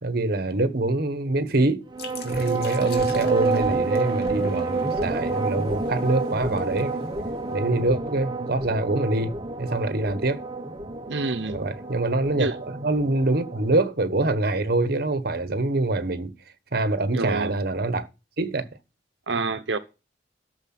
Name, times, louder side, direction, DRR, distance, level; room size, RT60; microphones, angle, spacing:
voice 1, 0.0-1.8 2.2-7.0 7.5-10.4 11.5-16.3 16.7-18.1 18.4-18.7, right 2 dB, 60° right, 1.2 m, -25 dB
sound 1, 1.9-13.8, right 3 dB, 25° right, 1.2 m, -29 dB
sound 2, 2.0-7.5, left 4 dB, 60° left, 2.4 m, -41 dB
voice 2, 11.1-11.6 12.4-12.6 17.1-17.5 19.3-19.8, right 3 dB, 90° right, 0.9 m, -27 dB
12.5 x 6.8 x 5.9 m
head